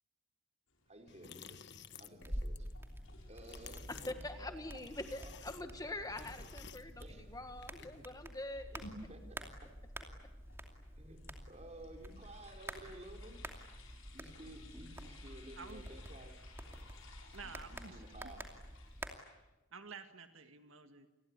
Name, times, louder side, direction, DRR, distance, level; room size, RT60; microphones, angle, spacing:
sound 1, 0.7-19.3, left 2 dB, 75° left, 7.0 m, -60 dB
voice 1, 0.9-1.6 2.0-2.7 3.3-4.5 5.2-5.3 6.2-6.3 7.0-7.2 7.8-7.9 9.1-9.7 11.0-13.4 14.1-16.4 17.4-18.4, right 1 dB, 30° right, 4 dB, 4.2 m, -54 dB
sound 2, 1.1-8.1, left 7 dB, 55° left, 1.3 m, -55 dB
sound 3, 2.2-19.1, right 1 dB, 10° right, 2.6 m, -48 dB
voice 2, 3.9-8.8, left 2 dB, 15° left, 8 dB, 1.5 m, -44 dB
voice 3, 15.6-15.9 17.3-18.4 19.7-21.1, right 5 dB, 70° right, 7 dB, 1.9 m, -51 dB
29.0 x 21.5 x 9.5 m, 1.1 s
head